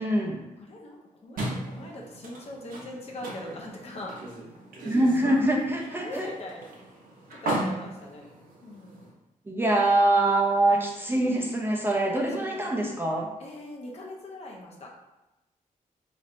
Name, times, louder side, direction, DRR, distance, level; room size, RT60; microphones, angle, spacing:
voice 1, 0.0-0.4 4.9-6.3 9.5-13.3, right 1 dB, 15° right, -1 dB, 0.4 m, -24 dB
voice 2, 0.6-4.2 5.9-6.7 7.4-8.3 8.6-9.1 12.2-12.9 13.4-14.9, left 1 dB, 50° left, -1 dB, 0.8 m, -41 dB
sound 1, 1.4-9.1, right 1 dB, 90° right, 1.0 m, -37 dB
4.1 x 3.3 x 2.5 m, 0.99 s
wide cardioid pair, 160°, 14 cm